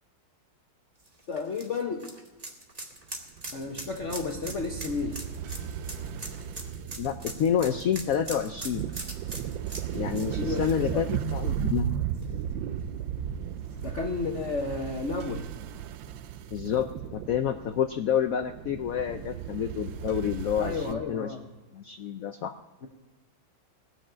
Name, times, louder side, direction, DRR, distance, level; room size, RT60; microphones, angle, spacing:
sound 1, 1.0-11.8 12.1-12.2 13.7-13.8, right 2 dB, 20° right, 1.4 m, -41 dB
voice 1, 1.3-2.0 3.5-5.2 10.4-11.0 13.8-15.5 20.6-21.5 22.8-22.9, left 4 dB, 50° left, 2 dB, 1.0 m, -32 dB
sound 2, 3.4-21.0, right 9 dB, 80° right, 1.3 m, -35 dB
voice 2, 7.0-8.8 9.9-12.0 16.5-21.4 21.7-22.5, left 9 dB, 80° left, 8 dB, 0.7 m, -29 dB
17.5 x 6.5 x 8.7 m, 1.3 s
omnidirectional pair, 2.1 m